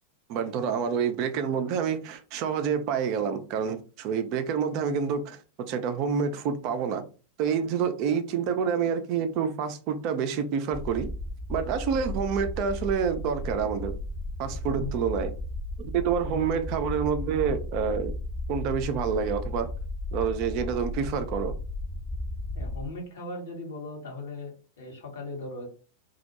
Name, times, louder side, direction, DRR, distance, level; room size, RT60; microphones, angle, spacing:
voice 1, 0.3-5.4 5.7-7.0 7.4-11.1 11.5-13.9 14.4-15.3 15.8-18.1 18.5-19.7 20.1-21.6, right 7 dB, 40° right, 0.3 m, -28 dB
sound 1, 10.7-22.9, left 1 dB, 25° left, 0.6 m, -34 dB
voice 2, 22.5-25.7, left 2 dB, 60° left, 0.9 m, -38 dB
2.2 x 2.0 x 2.9 m
figure-of-eight pair, 90°, 0 cm